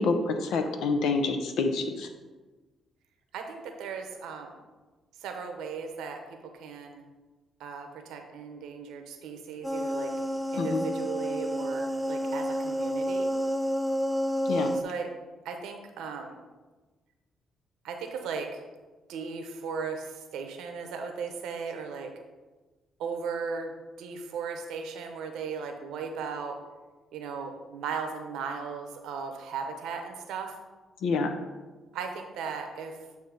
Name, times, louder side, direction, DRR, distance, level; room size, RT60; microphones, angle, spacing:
voice 1, 0.0-2.1 10.6-10.9 14.5-14.7 31.0-31.3, left 3 dB, 80° left, 6 dB, 0.7 m, -27 dB
voice 2, 3.3-4.6 5.2-7.0 7.6-10.1 10.5-13.3 14.8-15.1 15.4-16.4 17.8-18.6 19.1-22.1 23.0-26.6 27.1-30.5 31.9-33.0, right 5 dB, 85° right, 4 dB, 0.8 m, -37 dB
sound 1, 9.6-14.8, equal, 5° right, 0.3 m, -30 dB
8.1 x 2.7 x 5.0 m, 1.2 s
cardioid pair, 90°, 0 cm